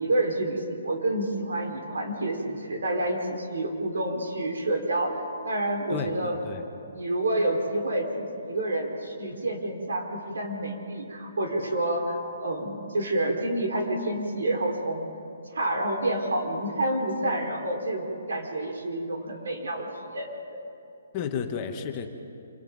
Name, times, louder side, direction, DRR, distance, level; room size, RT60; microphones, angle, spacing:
voice 1, 0.0-6.4 6.7-15.1 15.5-19.9 20.1-20.6, right 1 dB, 80° right, 1 dB, 4.7 m, -28 dB
voice 2, 5.9-6.6 21.1-22.1, left 6 dB, 20° left, 4 dB, 1.1 m, -32 dB
27.5 x 26.5 x 4.0 m, 2.7 s
hypercardioid pair, 175°, 0 cm